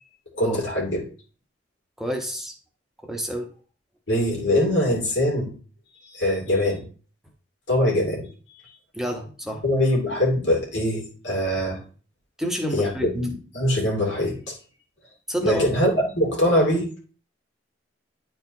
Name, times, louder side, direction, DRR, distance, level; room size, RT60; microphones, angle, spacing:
voice 1, 0.3-1.1 4.1-5.5 6.1-6.8 7.7-8.6 9.6-11.8 12.7-14.6 15.4-16.9, left 1 dB, 80° left, -1 dB, 2.5 m, -23 dB
voice 2, 2.0-2.5 3.0-3.5 8.9-9.6 12.4-13.1 15.3-15.7, right 1 dB, ahead, 2 dB, 0.8 m, -28 dB
10.0 x 4.4 x 2.7 m, 0.39 s
head